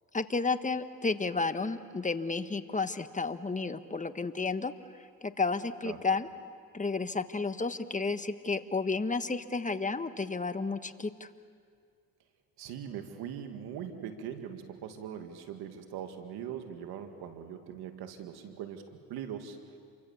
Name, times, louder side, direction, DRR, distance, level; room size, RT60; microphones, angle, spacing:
voice 1, 0.1-4.7 5.2-6.3 6.7-11.3, left 4 dB, 20° left, 11 dB, 1.3 m, -32 dB
voice 2, 12.6-19.6, right 9 dB, 85° right, 6 dB, 2.0 m, -41 dB
28.0 x 24.0 x 7.1 m, 2.2 s
supercardioid pair, 65°, 37 cm